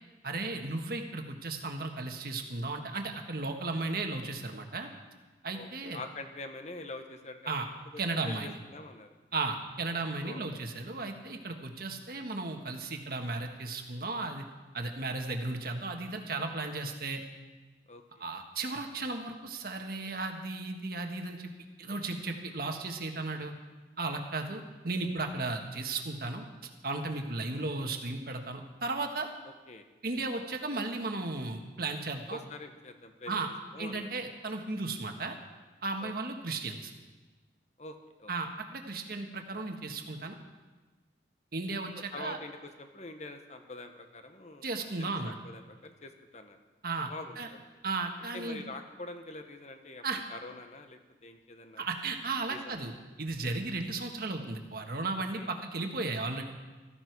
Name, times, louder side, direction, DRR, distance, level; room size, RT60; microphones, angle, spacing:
voice 1, 0.2-4.9 5.4-6.0 7.5-7.6 8.0-8.6 9.3-14.4 14.7-17.2 18.2-21.5 21.8-23.5 24.0-26.4 26.8-29.3 30.0-32.4 33.3-33.5 33.8-35.4 35.8-36.9 38.3-40.4 41.5-42.4 44.6-45.3 46.8-47.5 47.8-48.6 50.0-50.2 51.8-56.4, right 3 dB, 55° right, 4 dB, 1.5 m, -35 dB
voice 2, 5.5-7.5 7.9-9.1 10.2-10.5 17.9-18.2 29.7-29.9 32.3-33.4 33.7-34.1 36.0-36.1 37.8-38.3 42.1-44.7 45.0-46.6 47.1-47.6 48.3-50.0 50.3-51.8 52.5-52.8 55.4-55.5, left 2 dB, 40° left, 6 dB, 1.2 m, -45 dB
16.0 x 14.5 x 4.7 m, 1.3 s
head